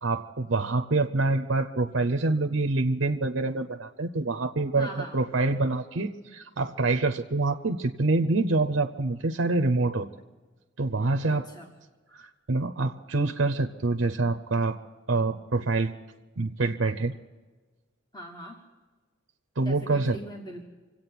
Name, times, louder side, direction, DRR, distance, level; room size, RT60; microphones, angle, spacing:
voice 1, 0.0-10.1 10.8-11.5 12.1-14.8 15.1-15.9 16.4-17.1 19.6-20.2, right 3 dB, 70° right, 7 dB, 0.7 m, -26 dB
voice 2, 4.8-5.2 11.2-11.7 18.1-18.6 19.6-20.7, equal, 20° left, 1 dB, 1.3 m, -41 dB
25.5 x 8.7 x 6.0 m, 1.3 s
head